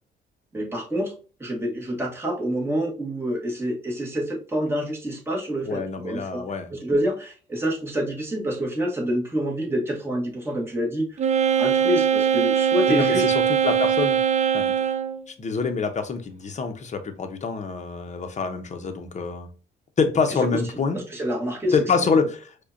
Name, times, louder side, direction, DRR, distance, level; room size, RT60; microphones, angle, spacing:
voice 1, 0.5-1.1 1.4-6.4 6.7-11.2 11.6-13.3 20.9-21.7 22.0-22.1, equal, 10° right, 1.1 m, -27 dB
voice 2, 5.6-6.7 12.9-14.2 14.5-14.7 15.3-19.5 20.0-21.0 21.7-22.6, left 5 dB, 35° left, 0.7 m, -26 dB
Wind instrument woodwind instrument, 11.2-15.2, right 8 dB, 35° right, 0.4 m, -21 dB
4.7 x 2.2 x 2.5 m
cardioid pair, 90°, 20 cm